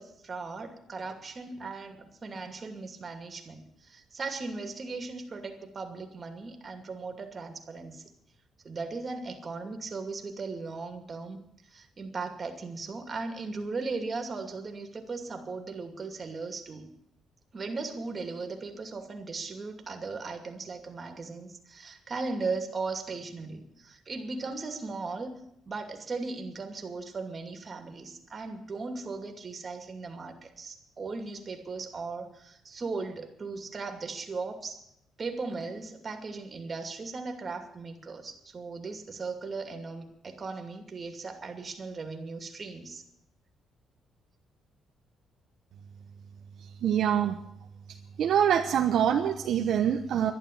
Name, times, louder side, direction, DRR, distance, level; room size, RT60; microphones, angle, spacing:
voice 1, 0.0-8.0 8.6-11.4 11.7-16.9 17.5-25.4 25.7-34.8 35.2-43.0, right 4 dB, 40° right, 5 dB, 2.5 m, -37 dB
voice 2, 46.8-47.4 48.2-50.3, right 9 dB, 70° right, 4 dB, 1.0 m, -25 dB
11.5 x 11.5 x 8.7 m, 0.76 s
cardioid pair, 90°, 0 cm